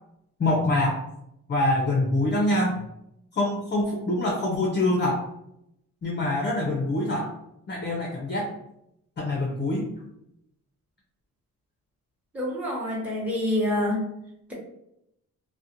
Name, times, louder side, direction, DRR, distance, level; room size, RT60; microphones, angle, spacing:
voice 1, 0.4-1.0 1.5-2.8 3.3-5.2 6.0-7.3 7.7-8.5 9.2-9.9, left 1 dB, 30° left, 0 dB, 0.5 m, -25 dB
voice 2, 12.3-14.1, left 1 dB, 5° right, -5 dB, 0.9 m, -26 dB
2.3 x 2.1 x 2.8 m, 0.80 s
cardioid pair, 65°, 38 cm